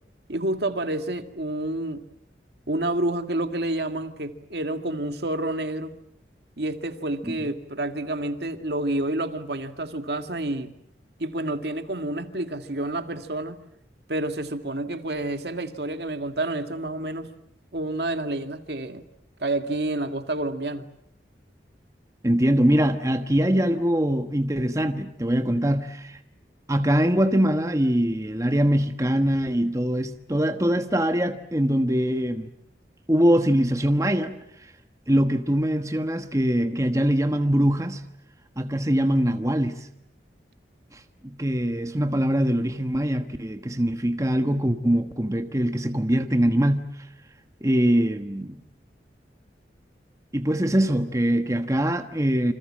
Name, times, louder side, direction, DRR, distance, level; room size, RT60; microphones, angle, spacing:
voice 1, 0.3-2.0 2.7-5.9 6.6-10.7 11.2-13.6 14.1-17.3 17.7-19.0 19.4-20.9, right 1 dB, 65° right, 2.0 m, -29 dB
voice 2, 22.2-26.2 26.7-32.5 33.1-34.7 35.1-38.0 38.6-39.9 40.9-47.1 47.6-48.6 50.3-52.5, equal, 20° right, 1.2 m, -23 dB
28.5 x 26.5 x 7.5 m
head